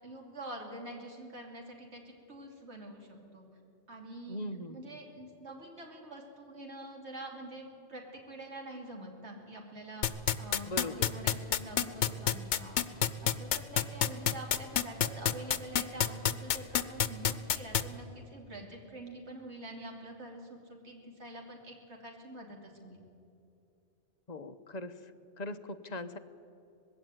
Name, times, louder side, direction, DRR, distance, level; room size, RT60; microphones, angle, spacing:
voice 1, 0.0-3.1 3.3-3.5 3.9-4.4 4.7-12.8 13.2-23.0, right 1 dB, 70° right, 1 dB, 3.1 m, -46 dB
voice 2, 4.3-5.0 10.6-11.1 24.3-24.9 25.4-26.2, left 1 dB, 40° left, 9 dB, 0.9 m, -40 dB
sound 1, 10.0-17.8, left 9 dB, 80° left, 1.1 m, -27 dB
20.0 x 16.5 x 9.5 m, 2.7 s
omnidirectional pair, 1.2 m